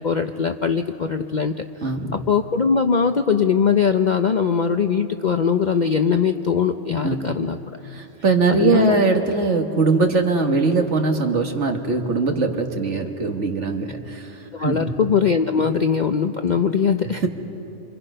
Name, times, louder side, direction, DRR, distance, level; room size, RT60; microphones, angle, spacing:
voice 1, 0.0-1.6 2.1-7.6 8.5-9.0 14.5-17.2, left 6 dB, 50° left, 6 dB, 0.5 m, -21 dB
voice 2, 1.8-2.2 7.0-7.4 7.8-14.9, right 3 dB, 60° right, 4 dB, 1.8 m, -21 dB
27.5 x 26.5 x 5.6 m, 2.9 s
omnidirectional pair, 1.4 m